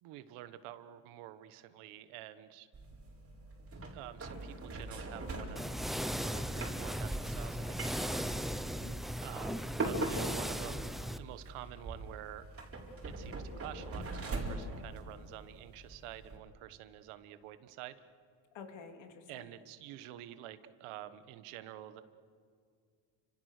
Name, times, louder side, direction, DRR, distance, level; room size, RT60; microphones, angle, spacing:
voice 1, 0.0-2.7 3.9-8.6 9.2-12.5 13.0-18.0 19.3-22.0, right 13 dB, 90° right, 12 dB, 1.5 m, -49 dB
sound 1, 2.7-16.4, right 2 dB, 25° right, 4.5 m, -42 dB
sound 2, 5.6-11.2, equal, ahead, 0.6 m, -37 dB
voice 2, 8.3-9.6 18.5-19.5, left 5 dB, 65° left, 5 dB, 3.3 m, -52 dB
30.0 x 25.5 x 6.7 m, 2.2 s
cardioid pair, 130°, 49 cm